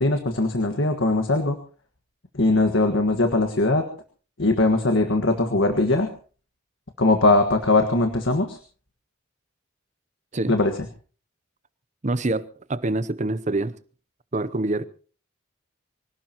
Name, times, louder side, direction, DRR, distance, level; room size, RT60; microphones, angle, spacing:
voice 1, 0.0-1.6 2.3-3.9 4.4-6.1 7.0-8.6 10.5-10.7, left 2 dB, 65° left, 1.6 m, -20 dB
voice 2, 12.0-12.4 12.7-13.7 14.3-14.9, right 2 dB, 35° right, 0.7 m, -25 dB
25.0 x 17.5 x 3.0 m
head